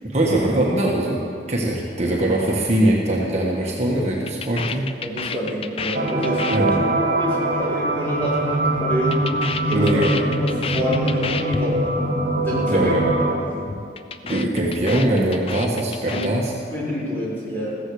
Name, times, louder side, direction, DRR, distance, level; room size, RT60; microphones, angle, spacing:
voice 1, 0.1-1.2 1.5-4.9 6.5-6.9 9.7-10.1 12.7-13.0 14.2-16.5, right 1 dB, 40° right, -3 dB, 1.4 m, -21 dB
sound 1, 3.4-3.6 3.8-8.4 8.7-11.6 11.8-12.0 12.3-12.7 12.9-13.2 13.5-16.3, left 5 dB, 30° left, 0.4 m, -31 dB
voice 2, 5.0-6.8 7.1-11.9 12.4-13.0 13.3-13.7 14.2-14.3 16.1-16.3 16.7-17.8, equal, 10° left, -9 dB, 4.4 m, -27 dB
sound 2, 5.9-13.4, right 1 dB, 65° right, 1.9 m, -23 dB
15.5 x 14.0 x 4.9 m, 2.4 s
head